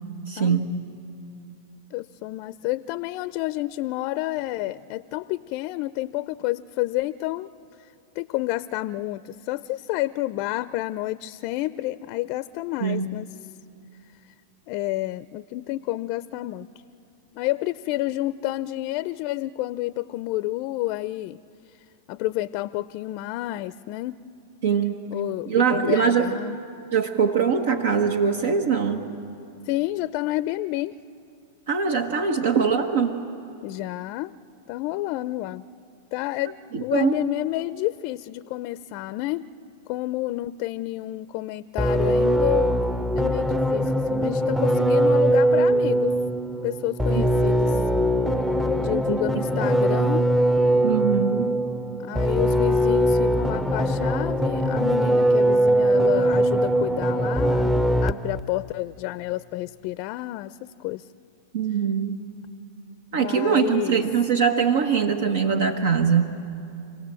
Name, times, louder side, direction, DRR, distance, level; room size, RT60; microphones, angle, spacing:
voice 1, 0.3-0.7 12.8-13.1 24.6-24.9 25.5-26.3 26.9-29.0 31.7-33.2 36.7-37.2 47.7-47.8 49.1-49.5 50.8-51.5 61.5-62.2 63.1-66.3, right 6 dB, 70° right, 6 dB, 1.4 m, -22 dB
voice 2, 1.9-7.5 8.1-13.3 14.7-16.7 17.3-21.4 22.1-24.2 25.1-26.6 29.7-30.9 33.6-34.3 34.7-35.6 36.1-39.5 39.9-42.9 43.1-46.1 46.6-47.8 48.8-50.3 52.0-61.1 63.1-64.0, left 17 dB, 50° left, 14 dB, 0.5 m, -29 dB
sound 1, 41.8-58.4, right 1 dB, 5° right, 0.7 m, -21 dB
28.5 x 17.5 x 7.7 m, 2.7 s
hypercardioid pair, 110°, 0 cm